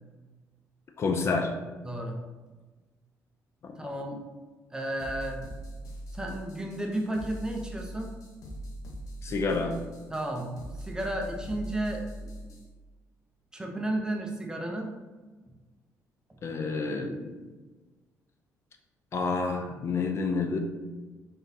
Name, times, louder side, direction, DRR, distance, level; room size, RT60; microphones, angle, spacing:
voice 1, 1.0-1.5 3.6-3.7 9.2-9.7 16.4-17.2 19.1-20.6, left 4 dB, 45° left, 4 dB, 0.4 m, -28 dB
voice 2, 1.8-2.2 3.8-4.2 4.7-5.4 6.1-8.1 10.1-12.3 13.5-14.9, right 1 dB, 10° right, 1 dB, 0.6 m, -33 dB
sound 1, 5.0-12.7, right 1 dB, 65° left, 0.9 m, -41 dB
3.8 x 3.6 x 2.7 m, 1.2 s
cardioid pair, 105°, 6 cm